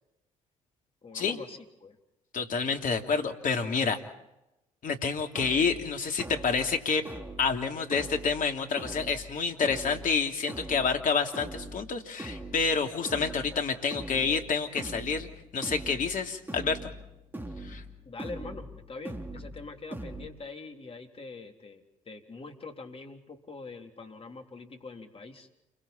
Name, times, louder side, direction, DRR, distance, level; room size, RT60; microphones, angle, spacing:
voice 1, 1.0-2.0 18.1-25.5, left 3 dB, 35° left, 4 dB, 3.7 m, -44 dB
voice 2, 2.3-4.0 4.8-7.1 7.4-16.9 17.6-17.8, left 5 dB, 50° left, 5 dB, 2.9 m, -28 dB
sound 1, 5.3-20.3, right 1 dB, 10° right, 3.5 m, -42 dB
29.5 x 23.5 x 4.4 m, 0.92 s
hypercardioid pair, 55°, 17 cm